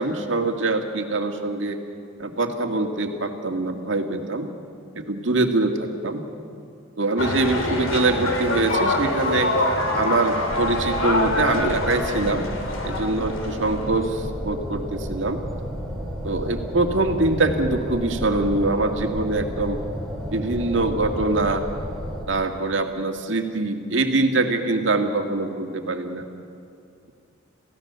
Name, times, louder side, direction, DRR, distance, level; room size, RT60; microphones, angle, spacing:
voice 1, 0.0-1.8 2.2-4.5 4.9-6.2 7.0-9.5 9.9-12.5 12.8-15.4 16.2-19.8 20.3-21.6 22.3-26.3, right 2 dB, 70° right, 4 dB, 1.9 m, -24 dB
sound 1, 7.2-14.0, left 1 dB, 80° left, 2.9 m, -25 dB
sound 2, 10.5-22.3, equal, ahead, 2.8 m, -32 dB
28.5 x 16.0 x 6.8 m, 2.6 s
head